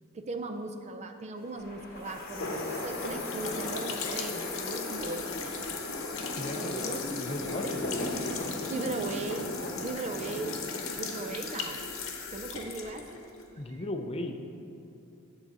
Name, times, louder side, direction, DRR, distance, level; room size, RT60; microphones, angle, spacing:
voice 1, 0.1-5.6 6.6-7.1 7.6-7.7 8.7-9.5 9.7-10.6 10.9-11.9 12.3-13.3 13.7-13.9, right 3 dB, 30° right, 6 dB, 0.4 m, -38 dB
sound 1, 1.4-11.8, left 1 dB, 45° left, 1.0 m, -38 dB
sound 2, 1.6-13.1, right 2 dB, 65° right, 1.4 m, -56 dB
sound 3, 2.1-13.5, left 5 dB, 70° left, 0.9 m, -38 dB
voice 2, 6.4-7.6 13.6-14.4, left 1 dB, 30° left, 5 dB, 0.5 m, -36 dB
8.8 x 3.9 x 6.9 m, 2.7 s
head